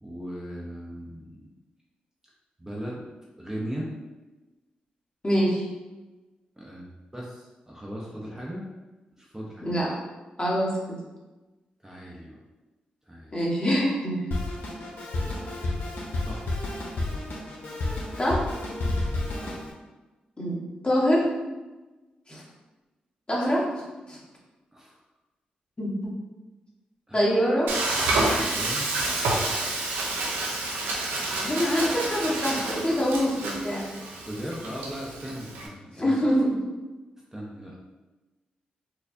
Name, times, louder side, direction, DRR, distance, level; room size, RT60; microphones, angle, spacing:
voice 1, 0.0-1.5 2.6-3.1 3.4-3.9 6.6-8.6 9.2-9.7 11.8-12.4 13.1-13.4 15.2-16.4 19.4-19.6 24.7-25.0 27.1-27.3 28.4-29.1 34.2-36.2 37.3-37.9, equal, 15° right, -4 dB, 0.8 m, -38 dB
voice 2, 5.2-5.6 9.6-10.0 10.4-11.0 13.3-14.2 18.2-18.4 20.4-20.6 20.8-21.3 22.3-22.4 23.3-23.7 24.1-24.2 25.8-26.0 27.1-27.7 31.4-33.9 36.0-36.7, equal, 30° left, -5 dB, 1.4 m, -24 dB
Drum kit, 14.3-19.7, left 2 dB, 70° left, 0.7 m, -31 dB
Frying (food), 27.7-35.7, right 2 dB, 90° right, 0.5 m, -29 dB
4.3 x 2.3 x 2.7 m, 1.1 s
supercardioid pair, 40°, 3 cm